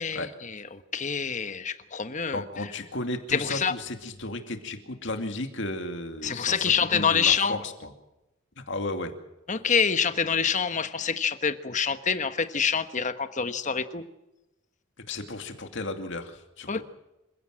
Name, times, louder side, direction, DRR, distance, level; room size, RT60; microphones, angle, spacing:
voice 1, 0.0-2.7 3.3-3.7 6.2-7.6 9.5-14.0 16.7-16.8, left 6 dB, 35° left, 10 dB, 1.2 m, -26 dB
voice 2, 2.3-7.9 8.6-9.1 15.1-16.7, left 2 dB, 60° left, 6 dB, 2.5 m, -34 dB
27.5 x 16.5 x 7.7 m, 0.97 s
head